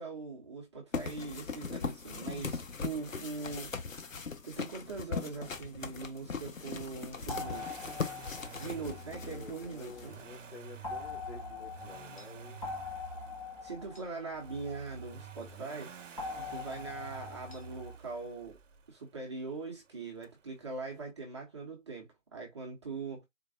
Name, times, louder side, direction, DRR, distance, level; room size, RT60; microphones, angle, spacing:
voice 1, 0.0-3.7 4.4-7.8 8.6-10.2 13.6-18.6 18.9-23.3, right 4 dB, 25° right, 0.5 m, -41 dB
sound 1, 0.9-10.5, left 5 dB, 90° left, 0.7 m, -40 dB
Accelerating revving vroom, 7.0-18.9 20.2-20.3, right 5 dB, 70° right, 0.6 m, -49 dB
sound 2, 7.3-10.1 10.8-15.4 16.2-18.0, left 4 dB, 30° left, 0.6 m, -43 dB
voice 2, 9.2-12.7, left 4 dB, 50° left, 2.1 m, -50 dB
4.0 x 2.2 x 2.5 m
figure-of-eight pair, 140°, 39 cm